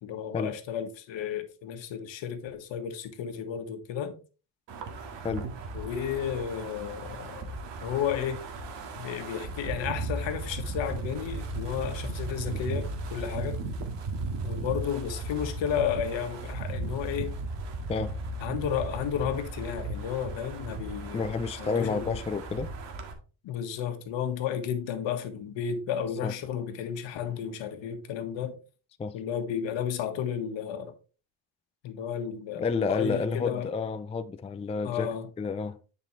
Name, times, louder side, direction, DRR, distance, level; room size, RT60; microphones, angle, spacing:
voice 1, 0.0-4.1 5.7-7.5 7.8-8.4 9.0-13.6 14.4-17.3 18.4-22.2 23.4-28.6 29.1-30.9 31.8-32.6 32.9-33.7 34.8-35.3, left 8 dB, 75° left, 1.6 m, -33 dB
Wind, 4.7-23.1, right 2 dB, 65° right, 1.9 m, -36 dB
voice 2, 21.1-22.7 26.2-26.3 29.0-29.1 32.6-35.8, left 5 dB, 15° left, 0.4 m, -30 dB
10.0 x 5.4 x 3.2 m
cardioid pair, 125°, 45 cm